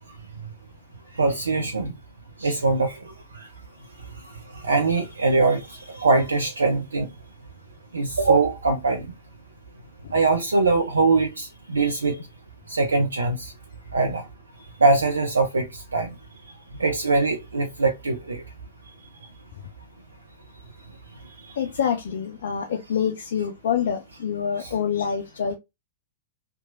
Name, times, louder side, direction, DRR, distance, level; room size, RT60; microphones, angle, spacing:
voice 1, 1.1-1.9 2.4-3.5 4.0-7.1 7.9-9.1 10.1-12.2 12.7-13.5 13.9-14.3 14.6-16.2 16.8-18.4 18.8-18.9 19.2-19.3 21.4-21.5 24.6-24.8, right 3 dB, 75° right, 0.4 m, -23 dB
voice 2, 21.6-25.5, left 7 dB, 55° left, 0.3 m, -26 dB
2.8 x 2.2 x 2.5 m
figure-of-eight pair, 100°, 0 cm